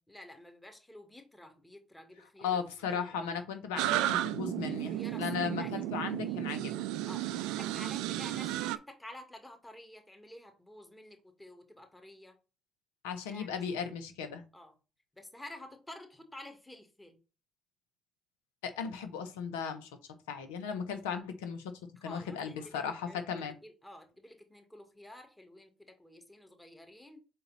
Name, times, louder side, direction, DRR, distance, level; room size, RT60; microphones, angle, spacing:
voice 1, 0.1-2.6 2.9-3.2 4.7-6.0 6.3-6.5 7.1-12.4 13.3-13.6 14.5-14.7 15.1-17.2 22.0-27.2, left 1 dB, 15° left, 1.9 m, -51 dB
voice 2, 2.4-6.9 13.0-14.4 18.6-19.9 20.3-21.7 22.0-23.5, left 7 dB, 90° left, 0.9 m, -36 dB
sound 1, 3.8-8.8, right 14 dB, 80° right, 0.3 m, -33 dB
5.7 x 4.0 x 4.1 m
hypercardioid pair, 55°, 0 cm